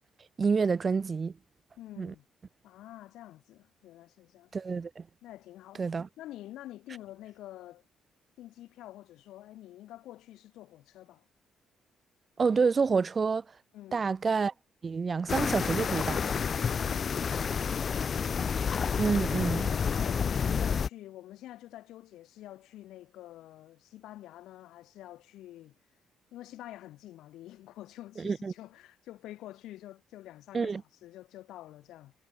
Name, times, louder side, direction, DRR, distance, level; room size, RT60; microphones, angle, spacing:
voice 1, 0.4-1.3 2.0-2.1 4.5-5.1 5.8-6.1 12.4-13.4 13.9-14.5 14.8-16.3 19.0-19.7 28.2-28.5 30.5-30.8, right 5 dB, 35° right, 0.7 m, -28 dB
voice 2, 1.8-2.3 2.6-4.5 5.2-7.8 8.4-11.3 13.7-14.1 16.5-18.1 19.5-25.8 26.3-30.7 31.0-32.1, left 14 dB, 85° left, 2.4 m, -48 dB
sound 1, 15.3-20.9, left 6 dB, 45° left, 0.5 m, -29 dB
cardioid pair, 90°, 0 cm